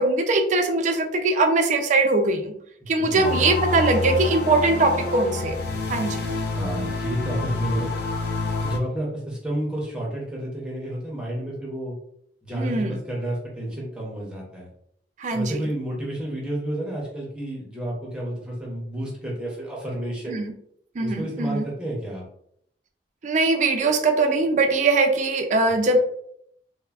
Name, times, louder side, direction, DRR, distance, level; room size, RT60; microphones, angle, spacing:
voice 1, 0.0-2.5 2.9-5.6 5.9-6.2 12.5-13.0 15.2-15.6 20.3-20.5 21.0-21.6 23.2-26.0, right 3 dB, 45° right, 4 dB, 0.4 m, -21 dB
voice 2, 2.8-3.4 6.5-7.9 8.6-11.9 12.4-14.7 15.3-20.4 21.0-22.2, right 1 dB, 5° right, -4 dB, 0.6 m, -30 dB
sound 1, 3.2-8.8, left 3 dB, 65° left, 0.4 m, -27 dB
3.1 x 2.1 x 2.3 m, 0.69 s
head